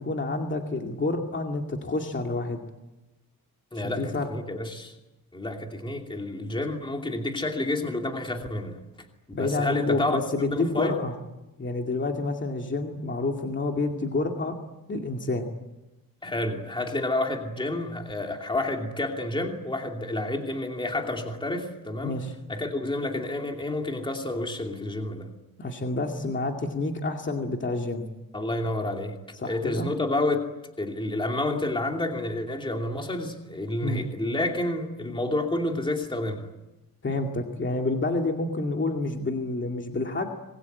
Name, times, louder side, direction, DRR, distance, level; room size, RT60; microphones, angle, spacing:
voice 1, 0.0-2.6 3.8-4.3 9.3-11.1 11.6-14.5 14.9-15.5 22.0-22.3 25.6-28.0 29.4-29.9 33.8-34.1 37.0-40.3, left 2 dB, 30° left, 2 dB, 2.3 m, -28 dB
voice 2, 3.7-4.9 5.3-8.8 9.4-10.2 10.5-11.0 16.2-22.2 22.5-25.3 28.3-29.2 29.5-30.5 30.8-36.5, left 2 dB, 15° left, 2 dB, 2.7 m, -29 dB
26.0 x 21.5 x 9.4 m, 1.0 s
wide cardioid pair, 180°, 36 cm